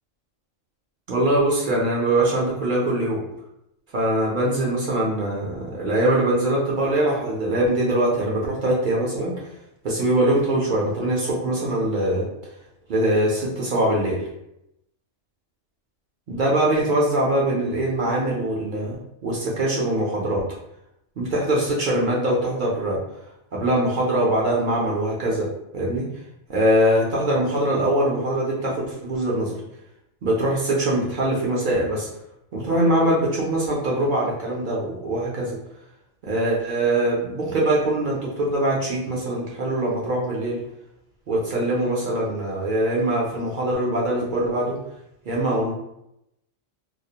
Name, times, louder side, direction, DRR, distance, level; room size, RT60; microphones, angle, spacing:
voice 1, 1.1-3.2 3.9-9.4 9.8-12.3 12.9-14.2 16.3-20.4 21.2-23.0 23.5-25.5 25.7-26.1 26.5-29.6 30.2-32.1 32.5-35.6 36.2-40.6 41.3-44.8 45.3-45.7, right 1 dB, 60° right, -4 dB, 0.5 m, -22 dB
2.3 x 2.0 x 2.7 m, 0.82 s
omnidirectional pair, 1.3 m